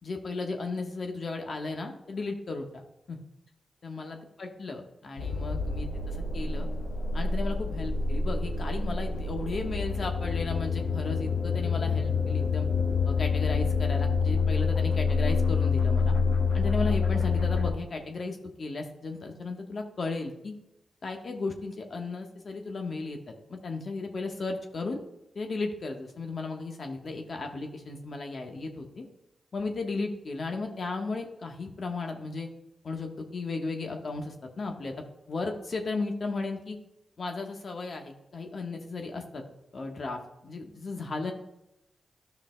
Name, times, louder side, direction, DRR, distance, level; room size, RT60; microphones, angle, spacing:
voice 1, 0.0-3.2 3.8-6.7 7.1-12.7 13.0-16.2 16.5-20.5 21.0-25.0 25.3-29.0 29.5-32.5 32.8-34.9 35.3-36.8 37.2-39.4 39.7-41.3, left 3 dB, 60° left, 3 dB, 1.2 m, -35 dB
sound 1, 5.2-17.7, left 4 dB, 80° left, 1.2 m, -27 dB
12.5 x 5.7 x 2.2 m, 0.87 s
cardioid pair, 45°, 0 cm